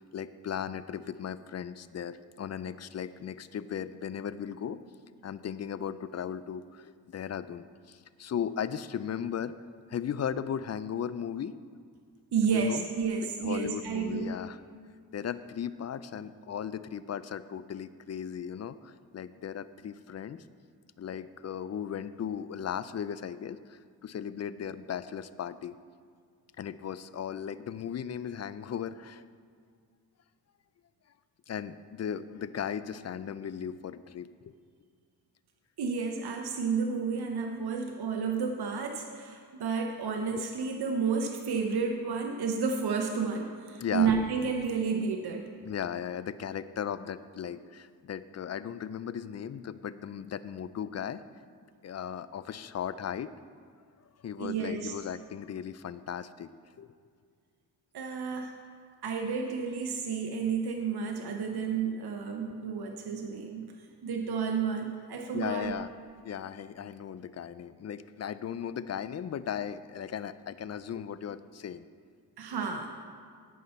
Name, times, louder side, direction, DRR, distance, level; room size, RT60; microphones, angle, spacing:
voice 1, 0.0-4.8 5.2-9.6 9.9-11.6 12.5-12.8 13.2-14.6 15.1-20.4 21.0-25.8 26.6-29.2 31.5-34.5 40.3-40.4 43.8-44.1 45.6-51.2 51.8-53.3 54.2-56.5 56.8-56.9 65.3-65.9 66.2-71.9, left 8 dB, 40° left, 15 dB, 0.4 m, -37 dB
voice 2, 12.3-14.4 35.8-45.4 54.4-54.9 57.9-58.5 59.0-63.7 64.0-65.7 72.4-73.1, right 5 dB, 70° right, 3 dB, 0.8 m, -31 dB
14.5 x 5.6 x 4.4 m, 2.1 s
cardioid pair, 60°, 40 cm